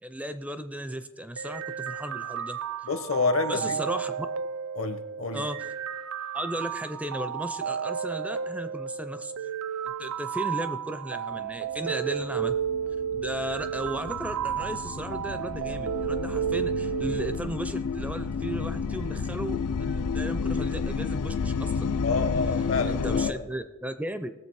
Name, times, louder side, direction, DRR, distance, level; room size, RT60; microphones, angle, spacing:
voice 1, 0.0-2.6 3.5-4.3 5.3-5.7 6.3-9.3 9.8-12.6 13.1-21.9 22.8-24.3, right 1 dB, 5° right, 11 dB, 0.4 m, -35 dB
sound 1, 1.4-17.4, right 8 dB, 70° right, 0.4 m, -32 dB
voice 2, 2.8-3.8 4.7-5.4 22.0-23.5, left 4 dB, 65° left, 10 dB, 1.0 m, -28 dB
sound 2, 11.8-23.3, left 5 dB, 85° left, 0.5 m, -31 dB
19.0 x 7.0 x 4.7 m, 1.2 s
head